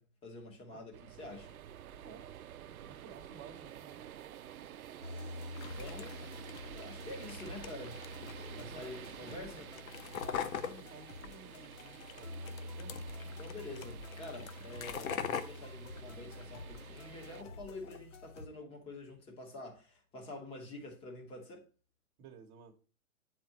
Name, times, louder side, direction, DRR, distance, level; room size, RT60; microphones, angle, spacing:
voice 1, 0.0-1.6 5.7-6.2 6.7-9.7 13.4-21.7, left 2 dB, 15° left, 1.3 m, -47 dB
sound 1, 0.9-17.4, right 10 dB, 80° right, 0.6 m, -51 dB
voice 2, 1.9-2.3 2.7-4.0 8.7-9.7 10.2-13.0 22.2-22.7, right 5 dB, 25° right, 1.2 m, -55 dB
sound 2, 5.0-18.5, left 2 dB, 55° left, 1.4 m, -48 dB
sound 3, 5.5-17.0 17.3-18.0, left 7 dB, 70° left, 0.9 m, -44 dB
8.9 x 4.4 x 2.9 m
hypercardioid pair, 145°, 43 cm